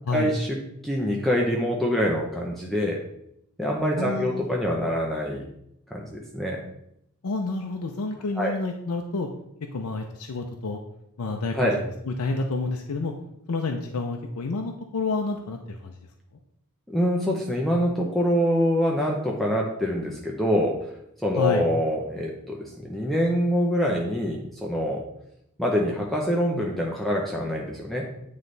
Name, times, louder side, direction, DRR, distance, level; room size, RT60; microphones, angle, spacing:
voice 1, 0.1-0.6 0.8-3.0 3.6-5.4 5.9-6.6 8.4-8.5 11.5-11.8 16.9-20.9 21.2-25.0 25.6-28.1, equal, ahead, -2 dB, 0.6 m, -25 dB
voice 2, 4.0-4.5 7.2-9.3 9.7-10.8 11.2-13.1 13.5-15.9 21.4-21.7, left 3 dB, 80° left, 3 dB, 0.6 m, -29 dB
9.1 x 3.2 x 3.9 m, 0.78 s
head